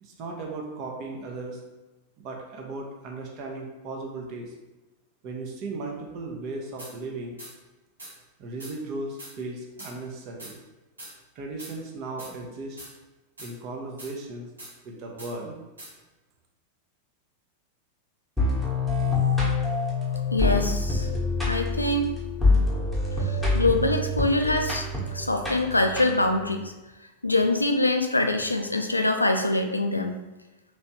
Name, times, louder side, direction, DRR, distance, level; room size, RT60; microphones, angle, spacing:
voice 1, 0.0-1.6 2.2-4.5 5.2-7.4 8.4-10.5 11.3-12.8 13.4-14.5 14.8-15.6, right 2 dB, 40° right, 0 dB, 0.7 m, -36 dB
sound 1, 6.8-6.9 7.4-7.5 8.0-8.1 8.6-8.7 9.2-9.3 9.8-9.9 10.4-10.5 11.0-11.1 11.6-11.7 12.2-12.3 12.8-12.9 13.4-13.5 14.0-14.1 14.6-14.7 15.2-15.3 15.8-15.9, right 1 dB, 75° right, 1.4 m, -42 dB
sound 2, 18.4-26.5, left 3 dB, 5° right, 1.2 m, -26 dB
voice 2, 20.3-21.1 21.5-22.1 23.2-24.9 25.1-26.6 27.2-30.2, left 2 dB, 85° left, 5 dB, 0.3 m, -24 dB
3.2 x 3.0 x 2.8 m, 1.0 s
figure-of-eight pair, 90°, 0 cm